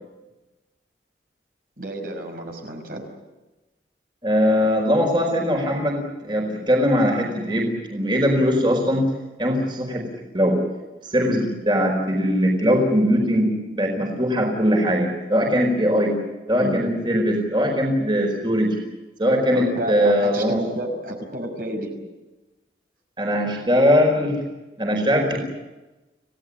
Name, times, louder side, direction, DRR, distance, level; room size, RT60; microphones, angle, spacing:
voice 1, 1.8-3.1 16.6-17.0 19.5-21.9, right 1 dB, 55° right, 3 dB, 5.5 m, -30 dB
voice 2, 4.2-9.0 9.4-10.0 10.3-10.6 11.0-16.1 16.5-18.8 19.2-20.6 23.2-24.4 24.8-25.4, equal, 25° right, 1 dB, 4.8 m, -20 dB
30.0 x 17.5 x 8.7 m, 1.1 s
head